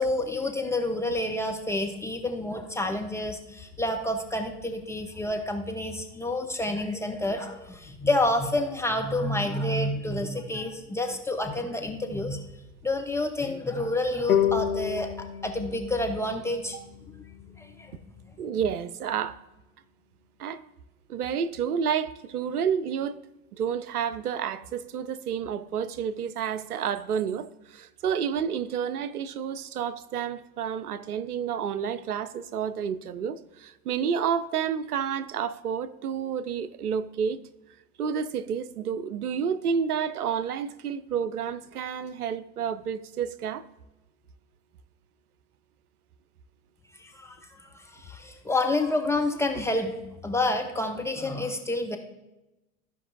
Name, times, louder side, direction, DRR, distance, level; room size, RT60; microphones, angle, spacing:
voice 1, 0.0-12.4 12.8-16.8 17.6-17.9 47.0-50.0 50.2-52.0, left 2 dB, 5° left, 0.3 m, -29 dB
sound 1, 14.3-17.6, left 9 dB, 85° left, 1.1 m, -29 dB
voice 2, 18.4-19.4 20.4-20.6 21.1-23.2 23.5-37.4 38.0-43.6, right 7 dB, 85° right, 0.6 m, -30 dB
14.5 x 5.3 x 2.6 m
hypercardioid pair, 90°, 44 cm